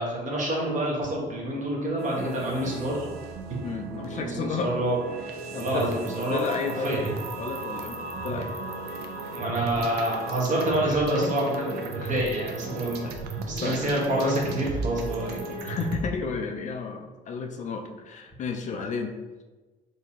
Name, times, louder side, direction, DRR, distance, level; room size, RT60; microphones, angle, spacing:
voice 1, 0.0-3.1 3.5-3.6 4.1-5.0 5.5-6.4 6.8-7.1 8.6-8.7 9.3-13.1 13.5-15.4, right 1 dB, 45° right, -4 dB, 1.4 m, -27 dB
sound 1, 2.0-16.0, right 3 dB, 75° right, 0.6 m, -35 dB
voice 2, 3.6-4.7 5.5-5.9 6.3-7.0 7.4-8.5 9.6-9.8 10.9-11.3 12.0-12.1 13.0-13.1 13.6-13.9 15.6-19.1, left 5 dB, 45° left, 4 dB, 0.4 m, -32 dB
4.1 x 2.7 x 2.9 m, 1.2 s
cardioid pair, 110°, 17 cm